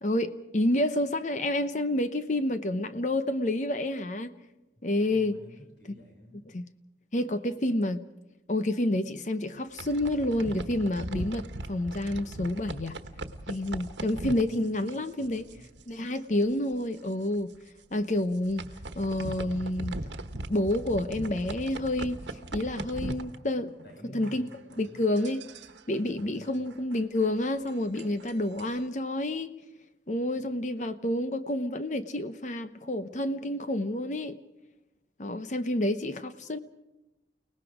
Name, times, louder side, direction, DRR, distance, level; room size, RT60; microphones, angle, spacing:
voice 1, 0.0-4.3 4.8-5.3 6.5-6.6 7.1-8.0 8.5-13.0 13.5-15.4 15.9-17.5 17.9-18.6 18.9-20.0 20.5-22.2 22.5-23.7 24.1-24.5 24.8-25.4 25.9-29.5 30.1-34.4 35.2-36.6, left 1 dB, 40° left, 0.8 m, -29 dB
voice 2, 5.0-6.5 14.1-15.7 23.8-25.1 26.1-26.6, equal, 85° left, 6.3 m, -51 dB
sound 1, 9.6-15.9 16.1-16.4 16.7-16.8 17.4-17.5 18.2-23.9 24.2-28.9, right 1 dB, 85° right, 1.3 m, -40 dB
30.0 x 19.0 x 5.0 m
head